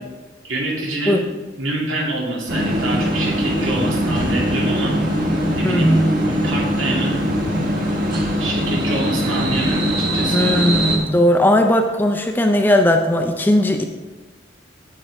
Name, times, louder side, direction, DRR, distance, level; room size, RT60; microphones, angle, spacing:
voice 1, 0.4-1.2 1.6-5.3 5.6-6.0 6.4-7.2 8.4-10.4, right 2 dB, 85° right, -3 dB, 2.3 m, -26 dB
sound 1, 2.5-11.0, equal, 45° right, 1.4 m, -21 dB
voice 2, 5.6-6.1 10.3-13.8, left 1 dB, 10° left, 4 dB, 0.4 m, -17 dB
8.5 x 8.0 x 3.3 m, 1.2 s
head